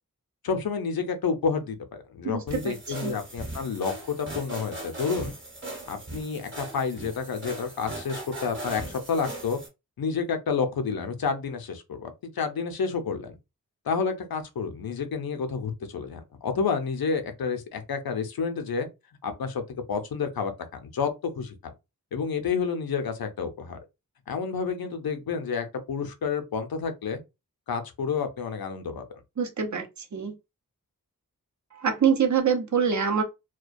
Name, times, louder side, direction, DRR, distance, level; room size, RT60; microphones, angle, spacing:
voice 1, 0.4-1.8 2.1-5.3 5.9-9.6 10.0-13.4 13.9-18.9 19.2-19.6 19.9-21.7 22.1-23.8 24.3-27.2 27.7-29.1, left 5 dB, 80° left, 0.6 m, -29 dB
voice 2, 2.2-2.7 3.0-3.1 29.4-29.9 30.1-30.3 31.7-33.2, right 7 dB, 50° right, 0.6 m, -25 dB
sound 1, 2.5-9.7, right 2 dB, 35° right, 0.9 m, -39 dB
2.3 x 2.1 x 2.5 m
wide cardioid pair, 60°, 36 cm